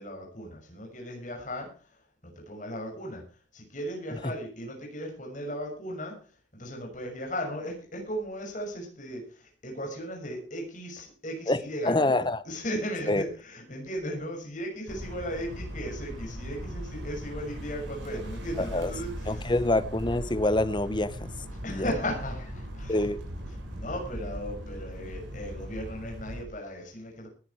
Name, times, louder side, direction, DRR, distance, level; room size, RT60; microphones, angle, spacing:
voice 1, 0.0-19.6 21.6-23.3 23.7-27.3, equal, 40° left, 6.4 m, -37 dB
voice 2, 11.9-12.4 13.1-13.2 18.7-18.9 19.3-21.3 21.7-21.8 22.9-23.2, left 2 dB, 25° left, 0.9 m, -26 dB
sound 1, 14.9-26.4, equal, 85° right, 5.9 m, -39 dB
20.0 x 10.0 x 4.7 m
head